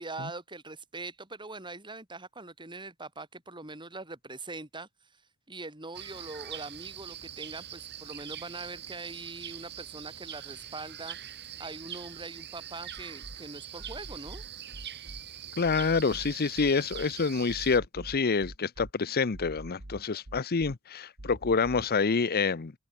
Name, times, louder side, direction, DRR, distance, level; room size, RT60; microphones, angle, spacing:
voice 1, 0.0-4.9 5.5-14.4, right 3 dB, 20° right, 4.4 m, -42 dB
sound 1, 5.9-17.8, right 10 dB, 50° right, 4.8 m, -43 dB
sound 2, 13.0-13.4 13.8-15.2 15.6-17.1 17.5-18.9 19.3-20.7 21.2-21.9, right 1 dB, 75° right, 3.0 m, -44 dB
voice 2, 15.6-22.7, left 4 dB, 45° left, 0.7 m, -27 dB
head